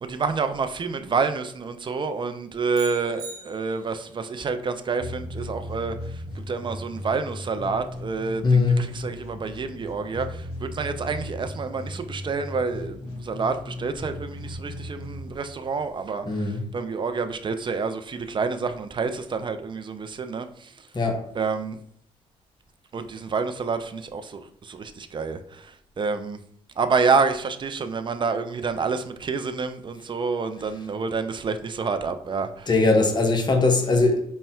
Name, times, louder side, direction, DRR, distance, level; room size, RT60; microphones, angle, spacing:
voice 1, 0.0-20.9 21.3-21.8 22.9-26.4 26.8-32.7, right 4 dB, 30° right, 0.4 m, -28 dB
sound 1, 2.7-4.1, right 2 dB, 75° right, 0.9 m, -41 dB
sound 2, 5.0-15.9, left 1 dB, 70° left, 0.8 m, -37 dB
voice 2, 8.4-8.8 16.3-16.6 20.9-21.2 32.7-34.3, left 3 dB, 25° left, 0.7 m, -20 dB
5.3 x 2.1 x 2.3 m
hypercardioid pair, 40°, 16 cm